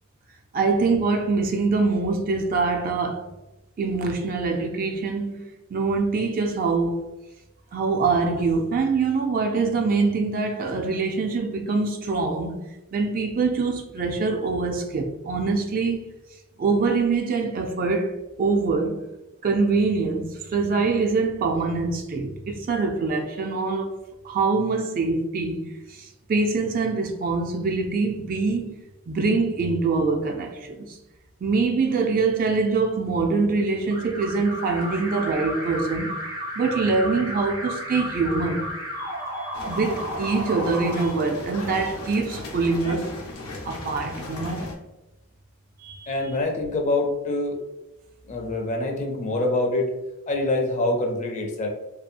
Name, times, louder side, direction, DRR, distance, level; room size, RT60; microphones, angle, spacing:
voice 1, 0.5-3.3 3.8-5.4 5.7-7.1 7.7-12.6 12.9-16.1 16.6-18.1 18.4-19.0 19.4-24.0 24.2-25.6 25.9-28.8 29.1-31.0 31.4-36.1 36.6-38.7 39.0-43.1 43.6-44.7 45.8-46.1, right 4 dB, 40° right, 0.3 m, -24 dB
Alarm, 33.9-41.8, equal, 85° right, 0.8 m, -33 dB
sound 1, 39.5-44.7, left 2 dB, 90° left, 0.7 m, -36 dB
voice 2, 46.1-47.6 48.3-49.9 50.3-51.7, left 2 dB, 35° left, 0.4 m, -25 dB
2.7 x 2.3 x 2.5 m
head